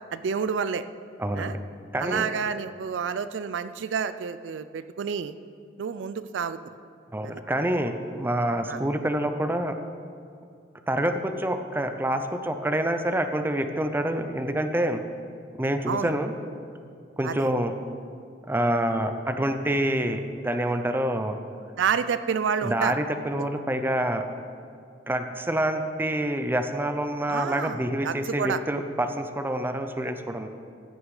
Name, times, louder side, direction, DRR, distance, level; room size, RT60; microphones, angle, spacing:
voice 1, 0.1-0.8 1.4-1.5 2.0-5.3 5.8-6.6 7.2-7.4 8.7-8.8 15.9-16.1 17.2-17.5 21.8-22.9 23.4-23.5 27.3-28.6, right 6 dB, 80° right, 13 dB, 0.4 m, -29 dB
voice 2, 1.2-1.5 1.9-2.3 7.1-9.8 10.9-15.0 15.6-16.3 17.2-17.7 18.5-21.4 22.6-24.3 25.1-30.5, right 1 dB, 10° right, 7 dB, 0.5 m, -27 dB
14.0 x 6.5 x 4.8 m, 2.4 s
head